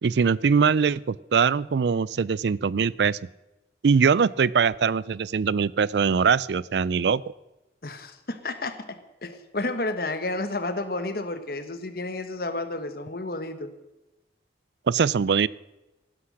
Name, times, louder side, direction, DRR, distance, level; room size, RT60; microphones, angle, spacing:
voice 1, 0.0-3.2 3.8-7.2 14.9-15.5, right 6 dB, 70° right, 22 dB, 0.4 m, -22 dB
voice 2, 7.8-13.7, left 2 dB, 55° left, 10 dB, 1.4 m, -31 dB
15.5 x 12.0 x 6.4 m, 1.0 s
head